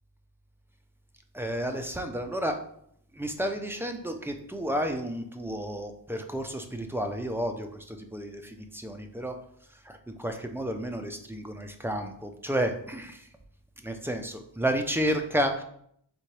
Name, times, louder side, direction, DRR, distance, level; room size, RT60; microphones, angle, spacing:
voice 1, 1.3-2.6 3.1-9.4 9.8-13.3 13.8-15.6, equal, 5° right, 5 dB, 0.4 m, -31 dB
4.3 x 3.5 x 3.2 m, 0.69 s
wide cardioid pair, 70°, 41 cm